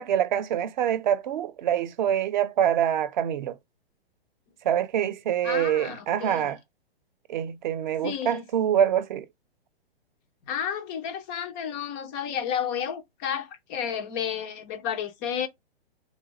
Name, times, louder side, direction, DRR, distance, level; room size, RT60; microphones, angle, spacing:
voice 1, 0.0-3.6 4.6-6.6 7.3-9.3, right 10 dB, 50° right, 0.7 m, -25 dB
voice 2, 5.4-6.5 8.0-8.4 10.5-15.5, left 8 dB, 15° left, 0.3 m, -31 dB
3.6 x 2.5 x 4.0 m
hypercardioid pair, 125°, 31 cm